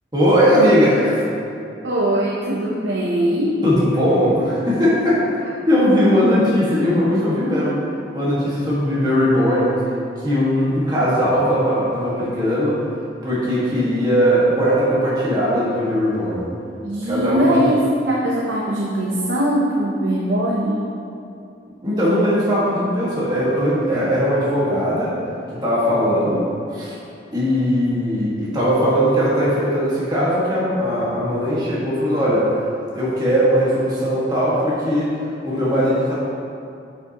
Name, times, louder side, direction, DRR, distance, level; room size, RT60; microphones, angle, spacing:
voice 1, 0.1-1.2 3.6-7.7 8.1-9.8 10.2-12.8 13.2-16.4 17.1-17.7 21.8-25.1 25.6-26.5 26.7-26.9 27.3-32.5 32.9-35.1 35.4-36.1, equal, 25° right, -9 dB, 1.7 m, -19 dB
voice 2, 1.8-3.6 16.8-20.8 26.1-26.2, right 1 dB, 85° right, -4 dB, 0.8 m, -21 dB
8.5 x 5.8 x 3.0 m, 2.5 s
head